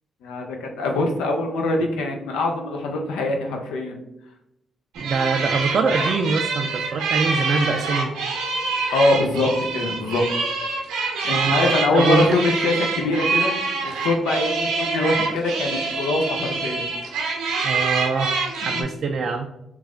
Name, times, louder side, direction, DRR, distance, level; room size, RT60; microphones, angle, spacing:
voice 1, 0.2-4.0 8.9-10.2 11.2-13.5 13.8-16.9 18.6-18.9, left 2 dB, 85° left, 2 dB, 0.6 m, -23 dB
sound 1, 4.9-18.8, right 4 dB, 85° right, 0.7 m, -25 dB
voice 2, 5.0-8.1 11.3-12.4 17.6-19.5, right 4 dB, 60° right, 4 dB, 0.3 m, -24 dB
3.2 x 2.3 x 3.7 m, 0.86 s
supercardioid pair, 55°, 0 cm